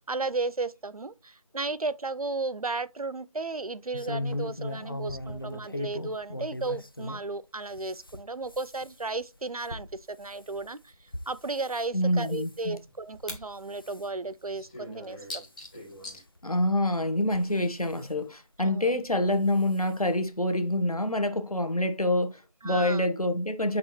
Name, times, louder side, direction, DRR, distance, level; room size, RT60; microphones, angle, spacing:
voice 1, 0.0-10.9 11.3-15.4 18.6-19.0 22.6-23.1, right 3 dB, 80° right, 0.6 m, -34 dB
sound 1, 3.9-7.3 7.7-11.8 12.2-12.6 13.1-13.5 13.8-14.1 14.7-14.8 15.1-15.2 16.4-16.5 17.2-18.0 19.2-19.4 19.7-19.8 20.2-20.3, left 1 dB, 40° left, 0.4 m, -38 dB
sound 2, 10.9-11.0 11.3-11.4 11.7-11.8 12.1-13.5 13.7-13.8 14.3-16.2, left 1 dB, 15° left, 1.4 m, -42 dB
voice 2, 11.9-12.8 16.4-23.8, left 1 dB, 85° left, 1.3 m, -26 dB
6.0 x 5.3 x 3.0 m
figure-of-eight pair, 165°, 18 cm